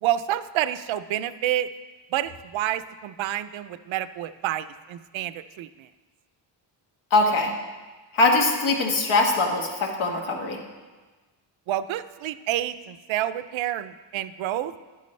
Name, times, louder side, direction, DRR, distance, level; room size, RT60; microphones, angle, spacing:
voice 1, 0.0-1.7 2.1-5.9 11.7-14.7, right 12 dB, 80° right, 13 dB, 0.5 m, -28 dB
voice 2, 7.1-7.5 8.1-10.6, left 2 dB, 90° left, 1 dB, 1.6 m, -22 dB
10.5 x 9.4 x 3.2 m, 1.3 s
wide cardioid pair, 150°, 46 cm